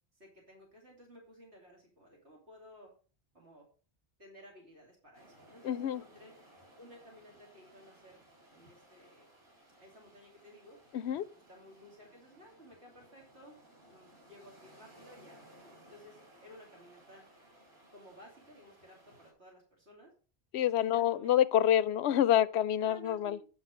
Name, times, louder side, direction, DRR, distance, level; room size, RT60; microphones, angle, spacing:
voice 1, 0.1-2.9 3.3-3.7 4.2-6.3 6.8-8.2 8.5-9.3 9.8-10.8 11.5-13.6 13.9-17.2 17.9-20.1 20.8-21.4 22.8-23.5, equal, 85° right, 3.1 m, -56 dB
sound 1, 5.1-19.3, right 1 dB, 60° right, 3.8 m, -60 dB
voice 2, 5.7-6.0 10.9-11.2 20.5-23.4, left 11 dB, 90° left, 0.9 m, -27 dB
9.7 x 6.2 x 5.0 m
omnidirectional pair, 1.1 m